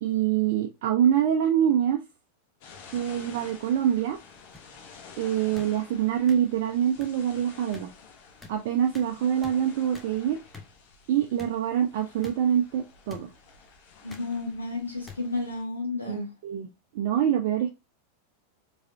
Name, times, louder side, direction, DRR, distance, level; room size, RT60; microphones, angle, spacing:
voice 1, 0.0-2.0 2.9-4.2 5.2-7.9 8.5-10.4 11.1-13.3 16.1-16.2 16.4-16.7 16.9-17.7, right 9 dB, 50° right, 0.6 m, -25 dB
sound 1, 2.6-15.6, left 5 dB, 50° left, 1.0 m, -50 dB
sound 2, 4.5-4.6 5.5-5.7 6.3-6.4 7.0-7.1 7.7-7.8 8.4-8.5 8.9-9.1 9.4-9.5 9.9-10.1 10.5-10.7 11.4-11.5 12.2-12.3 13.1-13.2 14.1-14.3 15.1-15.2 16.0-16.2, left 3 dB, 10° left, 1.0 m, -45 dB
voice 2, 14.0-16.3, left 3 dB, 80° left, 1.1 m, -32 dB
4.8 x 3.3 x 2.7 m
figure-of-eight pair, 90°, 0 cm